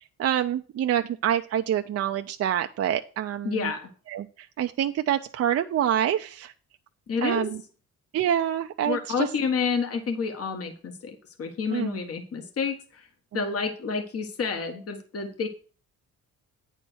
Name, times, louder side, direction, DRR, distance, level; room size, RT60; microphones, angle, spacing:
voice 1, 0.2-3.7 4.1-4.3 4.6-6.5 7.2-7.6 8.1-9.3 11.7-12.0, right 10 dB, 55° right, 6 dB, 0.5 m, -26 dB
voice 2, 3.4-3.9 7.1-7.5 8.8-13.1 13.3-15.5, left 5 dB, 50° left, 6 dB, 1.5 m, -29 dB
9.0 x 4.4 x 6.2 m, 0.38 s
cardioid pair, 90°, 30 cm